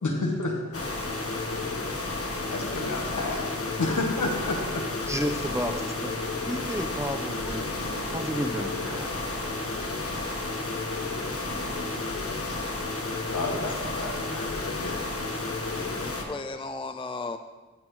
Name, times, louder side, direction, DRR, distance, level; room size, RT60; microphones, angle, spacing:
voice 1, 0.0-4.8 11.5-15.4, left 2 dB, 80° left, 1 dB, 1.4 m, -33 dB
sound 1, 0.7-16.2, left 3 dB, 50° left, 1.2 m, -32 dB
voice 2, 5.1-6.2 6.5-9.2, equal, 10° right, 5 dB, 0.8 m, -32 dB
sound 2, 7.1-12.8, right 2 dB, 85° right, 1.4 m, -46 dB
voice 3, 15.7-17.4, left 3 dB, 20° left, 8 dB, 0.4 m, -36 dB
12.5 x 6.1 x 3.2 m, 1.3 s
cardioid pair, 45°, 30 cm